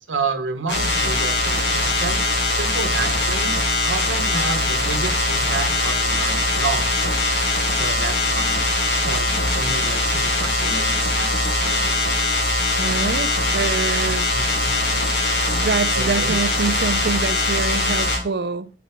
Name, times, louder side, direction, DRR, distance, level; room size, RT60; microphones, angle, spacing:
voice 1, 0.1-7.2 7.7-8.6 9.0-12.0 14.3-14.7 15.9-16.4, right 4 dB, 90° right, 0.9 m, -30 dB
sound 1, 0.7-18.2, left 2 dB, 70° left, 1.7 m, -21 dB
voice 2, 12.8-14.3 15.5-18.7, right 4 dB, 55° right, 0.4 m, -25 dB
5.9 x 4.1 x 4.4 m
head